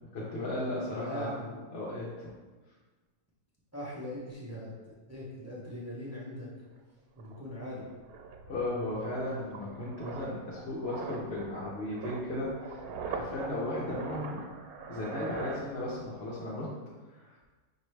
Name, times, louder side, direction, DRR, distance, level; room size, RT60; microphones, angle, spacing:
voice 1, 0.1-2.3 8.5-14.5 14.9-16.7 17.1-17.4, left 1 dB, 55° left, -7 dB, 0.9 m, -36 dB
voice 2, 0.9-1.5 3.7-4.7 5.1-6.5 7.2-7.9, equal, 20° right, -7 dB, 0.4 m, -40 dB
sound 1, 6.8-6.9 7.2-16.2 16.5-16.8, right 5 dB, 80° right, 1.0 m, -43 dB
5.2 x 2.6 x 3.2 m, 1.3 s
omnidirectional pair, 1.5 m